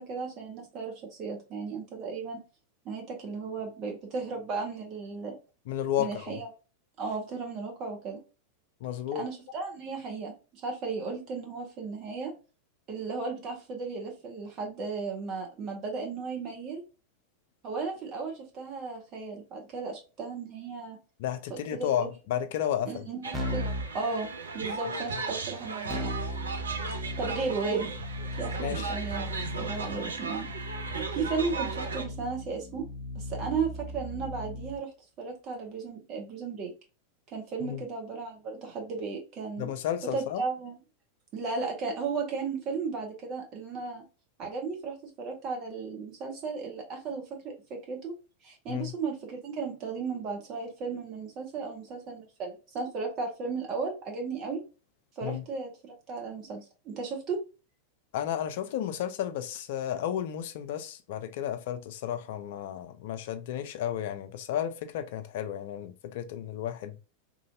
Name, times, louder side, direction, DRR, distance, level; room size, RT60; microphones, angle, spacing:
voice 1, 0.0-2.4 2.8-5.4 6.0-6.5 7.0-8.2 9.1-10.3 10.6-12.3 12.9-16.8 17.6-21.0 21.7-22.1 22.8-23.7 23.9-26.1 27.2-27.9 28.4-29.3 29.6-30.5 30.9-32.9 33.1-36.7 37.3-39.7 40.1-40.8 41.3-44.0 44.4-48.1 48.4-54.6 55.2-57.4, right 4 dB, 35° right, 1.1 m, -35 dB
voice 2, 5.7-6.4 8.8-9.3 21.2-23.1 25.1-25.2 28.6-28.9 37.6-37.8 39.6-40.5 48.7-48.9 55.2-55.4 58.1-67.0, left 10 dB, 50° left, 0.4 m, -33 dB
sound 1, 23.2-32.0, right 4 dB, 70° right, 0.4 m, -36 dB
Keyboard (musical), 23.3-23.9 25.9-34.8, equal, 5° right, 0.7 m, -37 dB
3.0 x 2.6 x 2.4 m
figure-of-eight pair, 90°, 0 cm